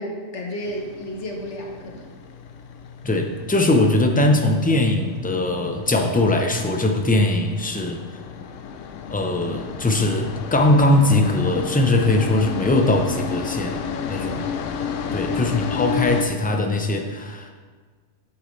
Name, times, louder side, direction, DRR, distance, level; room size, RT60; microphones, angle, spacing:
voice 1, 0.0-2.1 14.2-14.6 15.1-15.6, equal, 70° left, 0 dB, 1.5 m, -33 dB
sound 1, 0.6-16.2, left 7 dB, 90° left, 1.0 m, -32 dB
voice 2, 3.0-8.0 9.1-13.8 14.1-14.4 15.1-17.5, left 2 dB, 10° left, 2 dB, 0.4 m, -20 dB
8.6 x 7.9 x 3.2 m, 1.5 s
omnidirectional pair, 1.2 m